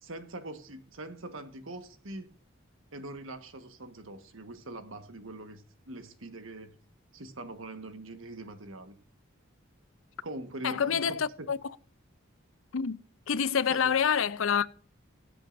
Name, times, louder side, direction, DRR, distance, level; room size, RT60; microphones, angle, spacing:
voice 1, 0.0-2.3 2.9-6.7 7.1-8.9 10.2-11.5 13.7-13.9, right 2 dB, 75° right, 1.5 m, -43 dB
voice 2, 10.6-11.6 12.7-13.0 13.3-14.7, left 7 dB, 75° left, 0.6 m, -27 dB
20.5 x 7.9 x 2.6 m
head